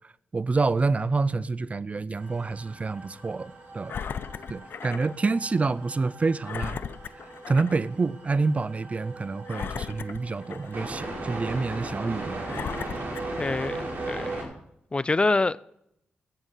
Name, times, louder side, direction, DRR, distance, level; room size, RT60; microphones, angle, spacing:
voice 1, 0.3-4.0 4.5-6.8 7.5-12.7, right 3 dB, 40° right, 0.5 m, -27 dB
sound 1, 2.2-14.4, right 2 dB, 60° right, 5.5 m, -38 dB
Engine, 3.9-5.2 5.6-5.7 6.4-7.8 8.2-8.4 9.5-11.0 11.6-11.7 12.4-13.9 14.6-14.7, left 7 dB, 75° left, 0.6 m, -37 dB
voice 2, 13.4-14.5 14.9-15.6, left 3 dB, 30° left, 0.5 m, -26 dB
13.0 x 9.7 x 5.7 m
cardioid pair, 65°, 4 cm